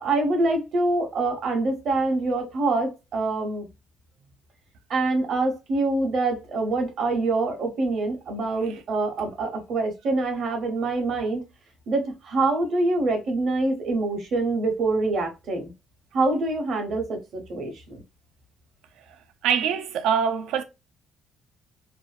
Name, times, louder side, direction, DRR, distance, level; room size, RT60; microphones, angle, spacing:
voice 1, 0.0-3.7 4.9-11.4 11.9-15.7 16.1-18.0, right 2 dB, 45° right, 0.7 m, -25 dB
voice 2, 19.4-20.6, right 7 dB, 85° right, 0.3 m, -24 dB
2.5 x 2.1 x 2.3 m
cardioid pair, 175°, 0 cm